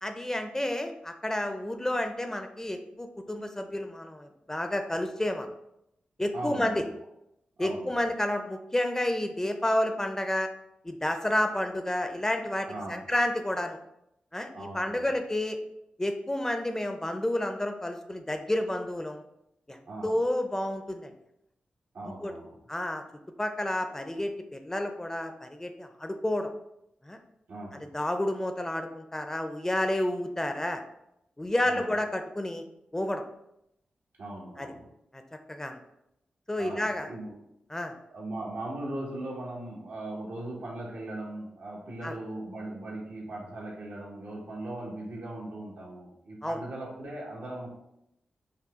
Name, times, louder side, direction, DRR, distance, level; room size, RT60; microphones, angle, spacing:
voice 1, 0.0-5.5 6.2-6.8 7.6-10.5 10.8-13.8 14.3-15.6 16.0-19.2 19.7-21.1 22.2-22.3 22.7-23.0 23.4-26.5 27.0-27.2 27.7-30.8 31.4-32.6 32.9-33.2 34.6-34.7 35.1-35.2 35.5-35.8 36.5-37.1 37.7-37.9 42.0-42.2 46.4-46.6, left 1 dB, 15° left, 6 dB, 0.5 m, -30 dB
voice 2, 6.3-6.8 7.6-8.1 12.7-13.0 14.5-15.1 19.9-20.1 21.9-22.6 27.5-27.9 31.6-31.9 34.2-34.9 36.6-37.3 38.1-47.7, right 1 dB, 80° right, -3 dB, 1.3 m, -39 dB
5.7 x 2.3 x 3.5 m, 0.81 s
cardioid pair, 65°, 3 cm